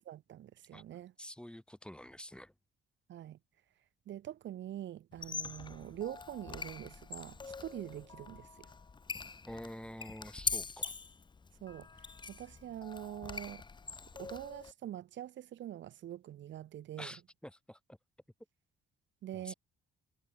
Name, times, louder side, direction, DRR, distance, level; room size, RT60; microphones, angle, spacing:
voice 1, 0.0-1.1 3.1-3.4 4.1-8.7 11.6-13.6 14.2-17.1 19.2-19.5, right 12 dB, 70° right, 1.2 m, -45 dB
voice 2, 1.2-2.5 9.5-10.9 17.0-18.0 19.3-19.5, left 1 dB, 5° left, 1.5 m, -48 dB
Squeak, 5.1-14.7, left 4 dB, 25° left, 0.8 m, -43 dB
cardioid pair, 90°, 20 cm